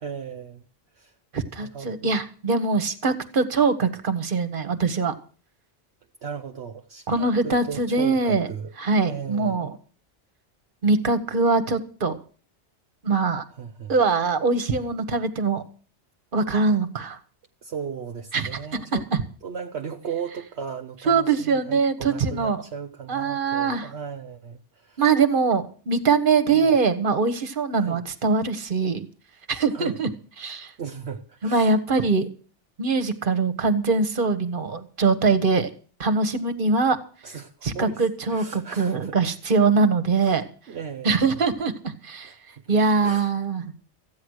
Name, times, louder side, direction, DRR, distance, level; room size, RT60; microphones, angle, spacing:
voice 1, 0.0-0.6 1.0-1.1 1.6-2.1 6.2-8.7 9.0-9.7 13.5-13.9 17.6-19.0 19.4-25.0 26.5-26.8 27.7-28.0 29.7-30.0 30.8-31.7 37.2-38.0 38.3-39.2 40.2-40.4 40.7-41.4 42.2-42.6 43.0-43.3, right 7 dB, 65° right, 1.2 m, -36 dB
voice 2, 1.3-5.1 7.1-8.5 8.8-9.8 10.8-12.2 13.0-13.4 13.9-15.6 16.3-17.2 18.3-18.5 19.1-19.2 21.1-22.6 23.1-23.9 25.0-29.1 29.5-30.1 30.4-30.7 31.4-32.3 32.8-35.7 36.0-37.0 37.6-40.4 41.0-42.3 42.7-43.7, right 4 dB, 45° right, 1.5 m, -22 dB
15.0 x 9.5 x 6.4 m
omnidirectional pair, 1.2 m